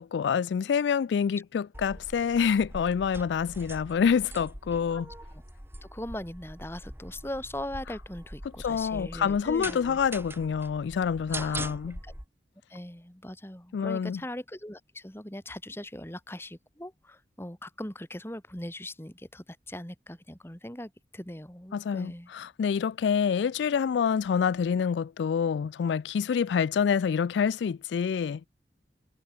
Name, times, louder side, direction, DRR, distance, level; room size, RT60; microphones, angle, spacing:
voice 1, 0.0-5.1 8.6-12.0 13.7-14.2 21.7-28.5, left 7 dB, 90° left, 0.3 m, -27 dB
sound 1, 1.7-12.2, right 2 dB, 15° right, 3.0 m, -43 dB
voice 2, 5.8-10.0 11.3-11.7 12.0-12.1 12.7-22.3, left 1 dB, 15° left, 2.3 m, -40 dB
head